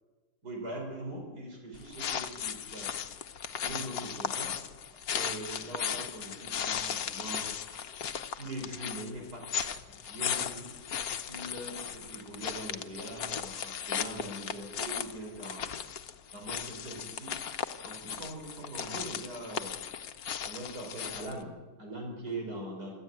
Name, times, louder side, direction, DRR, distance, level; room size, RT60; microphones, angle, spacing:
voice 1, 0.4-2.9 3.6-4.6 4.9-7.5 8.4-9.4 9.9-10.7 11.3-15.7 16.3-17.4 17.8-19.8 20.5-23.0, right 1 dB, 85° right, 1 dB, 5.6 m, -42 dB
sound 1, 1.7-21.4, left 8 dB, 70° left, 1.4 m, -37 dB
27.0 x 13.5 x 9.2 m, 1.4 s
omnidirectional pair, 1.7 m